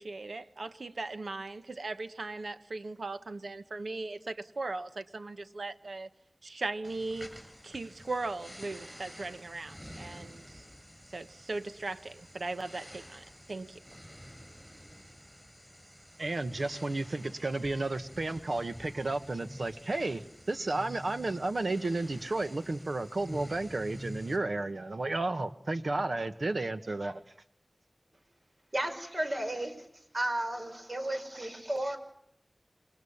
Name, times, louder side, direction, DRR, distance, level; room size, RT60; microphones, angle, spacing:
voice 1, 0.0-6.1 6.4-7.3 7.6-10.4 11.1-13.8, right 3 dB, 85° right, 1.2 m, -38 dB
sound 1, 6.8-24.4, equal, 5° right, 6.2 m, -49 dB
voice 2, 16.2-27.2, right 2 dB, 65° right, 1.5 m, -32 dB
voice 3, 28.7-29.9 30.1-32.0, right 1 dB, 45° right, 5.3 m, -33 dB
27.5 x 22.5 x 7.3 m
wide cardioid pair, 70°, 0 cm